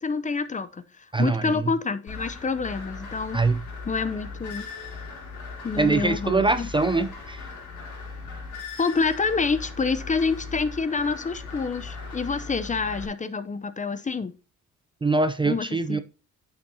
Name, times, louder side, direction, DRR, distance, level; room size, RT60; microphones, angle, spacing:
voice 1, 0.0-3.4 3.9-4.7 5.6-6.7 8.8-14.3 15.4-16.0, left 4 dB, 25° left, 0.7 m, -27 dB
voice 2, 1.1-1.7 3.3-3.6 5.8-7.5 15.0-16.0, right 3 dB, 15° right, 0.5 m, -23 dB
sound 1, 2.1-13.1, left 4 dB, 75° left, 4.0 m, -38 dB
9.4 x 5.9 x 2.8 m
cardioid pair, 90°, 30 cm